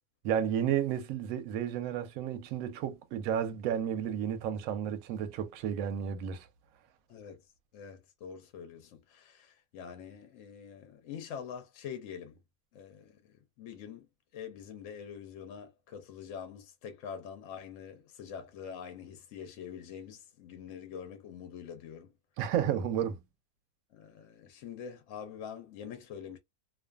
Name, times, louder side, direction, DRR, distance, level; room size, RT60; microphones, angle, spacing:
voice 1, 0.2-6.5 22.4-23.2, right 9 dB, 70° right, 0.9 m, -32 dB
voice 2, 7.1-7.4 7.7-12.4 12.7-14.1 14.3-22.1 23.9-26.4, left 7 dB, 65° left, 0.8 m, -45 dB
2.5 x 2.4 x 2.3 m
omnidirectional pair, 1.6 m